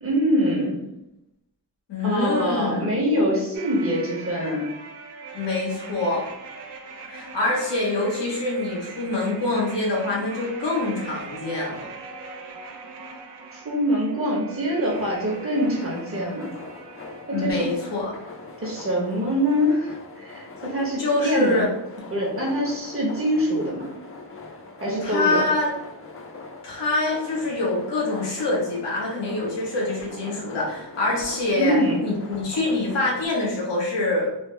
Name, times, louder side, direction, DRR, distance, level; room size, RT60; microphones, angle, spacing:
voice 1, 0.0-0.8 2.0-4.7 13.5-16.5 17.3-17.7 18.6-21.6 22.1-23.9 24.8-25.4 31.5-32.1, equal, 30° right, -2 dB, 1.0 m, -24 dB
voice 2, 1.9-2.9 5.3-6.2 7.0-11.9 17.3-18.1 21.0-21.7 24.9-25.7 26.6-34.3, left 2 dB, 85° left, -4 dB, 1.2 m, -25 dB
sound 1, 3.5-18.6 18.8-18.9, right 4 dB, 75° right, 0.7 m, -41 dB
sound 2, 14.8-33.2, left 3 dB, 35° left, 0.5 m, -41 dB
3.3 x 2.1 x 3.2 m, 0.88 s
cardioid pair, 95°, 42 cm